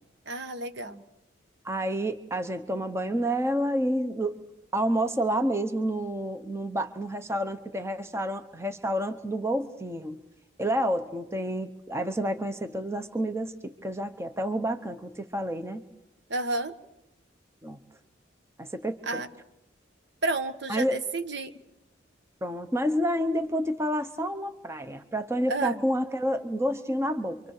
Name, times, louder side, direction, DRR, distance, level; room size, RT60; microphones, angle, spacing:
voice 1, 0.3-1.0 16.3-16.7 19.1-19.3 20.2-21.5 25.5-25.8, right 2 dB, 60° right, 9 dB, 1.4 m, -31 dB
voice 2, 1.6-4.4 4.7-10.2 10.6-15.8 17.6-17.8 18.6-19.2 20.7-21.0 22.4-27.4, equal, 15° right, 8 dB, 0.9 m, -29 dB
27.5 x 24.5 x 6.6 m, 0.85 s
head